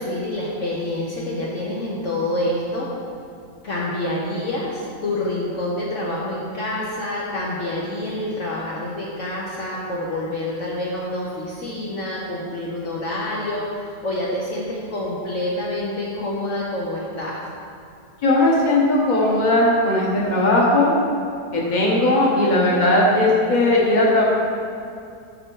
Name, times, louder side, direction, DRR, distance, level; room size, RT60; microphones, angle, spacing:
voice 1, 0.0-2.9 3.6-17.4, left 1 dB, 55° left, -6 dB, 1.2 m, -27 dB
voice 2, 18.2-20.9 21.5-24.2, left 1 dB, 30° left, -3 dB, 1.3 m, -18 dB
7.7 x 6.0 x 4.7 m, 2.4 s
omnidirectional pair, 1.7 m